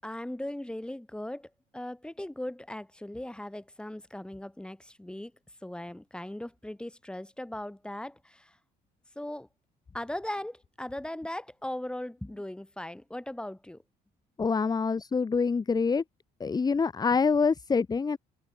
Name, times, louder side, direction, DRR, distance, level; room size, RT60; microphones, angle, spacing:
voice 1, 0.0-5.3 5.6-8.6 9.1-9.5 9.9-13.8, left 1 dB, 5° left, 6.8 m, -38 dB
voice 2, 14.4-16.0 16.4-18.2, left 5 dB, 25° left, 1.2 m, -26 dB
open air
cardioid pair, 110°, 17 cm